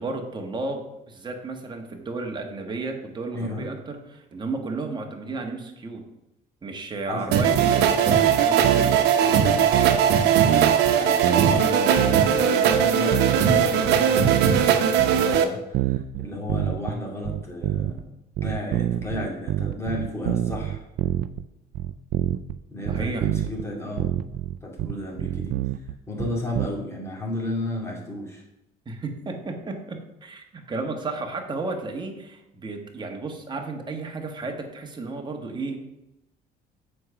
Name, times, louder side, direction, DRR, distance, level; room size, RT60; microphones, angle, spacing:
voice 1, 0.0-6.0 6.6-9.0 22.9-23.3 28.8-35.8, right 3 dB, 25° right, 3 dB, 1.4 m, -33 dB
voice 2, 3.3-3.7 7.1-7.2 9.2-9.6 10.9-18.2 18.4-20.8 22.7-24.1 24.6-25.6 26.1-28.4, left 1 dB, 15° left, -2 dB, 2.6 m, -33 dB
sound 1, 7.3-15.4, right 8 dB, 85° right, 0.8 m, -19 dB
sound 2, 7.6-7.9 8.3-9.0 9.3-10.2 10.5-11.6 12.0-12.4 12.7-14.7 15.0-15.4 15.7-17.0 17.3-18.0 18.4-21.4 21.7-22.6 22.9-23.7 24.0-26.7, right 14 dB, 65° right, 0.4 m, -27 dB
7.5 x 4.9 x 5.7 m, 0.91 s
cardioid pair, 110°, 17 cm